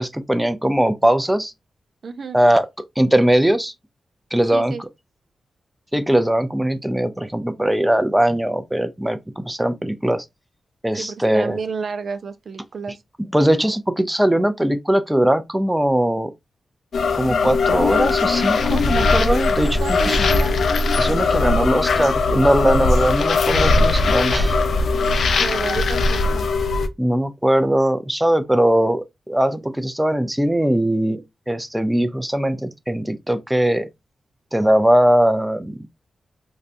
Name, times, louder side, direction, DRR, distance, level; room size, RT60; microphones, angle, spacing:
voice 1, 0.0-1.5 2.3-2.7 3.0-3.7 4.3-4.7 5.9-10.2 10.8-11.6 13.2-16.3 17.1-20.3 21.0-24.6 27.0-31.2 31.5-33.9 34.5-35.8, right 1 dB, 10° right, 0.5 m, -20 dB
voice 2, 2.0-2.4 4.5-4.8 11.0-13.0 19.8-20.6 25.4-26.5, right 5 dB, 65° right, 0.3 m, -30 dB
sound 1, 16.9-26.9, left 3 dB, 75° left, 0.4 m, -19 dB
3.9 x 2.3 x 2.5 m
cardioid pair, 60°, 0 cm